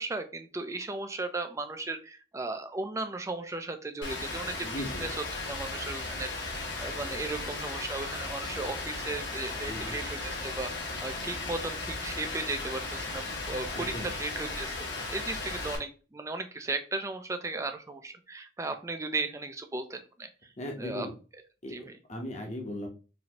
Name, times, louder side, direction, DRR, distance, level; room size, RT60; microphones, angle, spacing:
voice 1, 0.0-4.7 5.0-5.1 5.5-20.3 20.8-21.1 21.7-21.9, right 3 dB, 15° right, 7 dB, 0.4 m, -36 dB
Rain, 4.0-15.8, left 2 dB, 80° left, 1.3 m, -36 dB
voice 2, 4.6-5.1 9.7-10.0 13.7-14.1 20.6-21.1 21.6-21.8 22.1-22.9, left 1 dB, 40° left, 1 dB, 1.0 m, -37 dB
4.2 x 2.7 x 2.9 m, 0.35 s
head